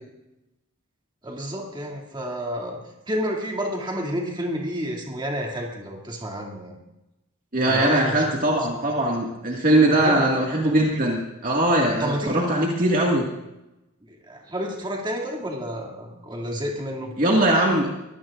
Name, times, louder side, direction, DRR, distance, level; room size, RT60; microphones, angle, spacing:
voice 1, 1.2-2.8 3.1-6.8 7.7-8.2 10.0-10.3 12.0-12.4 14.3-17.1, equal, 20° right, -1 dB, 2.6 m, -30 dB
voice 2, 7.5-13.3 17.2-17.9, right 1 dB, 40° right, -2 dB, 2.1 m, -21 dB
23.5 x 17.5 x 2.6 m, 0.93 s
head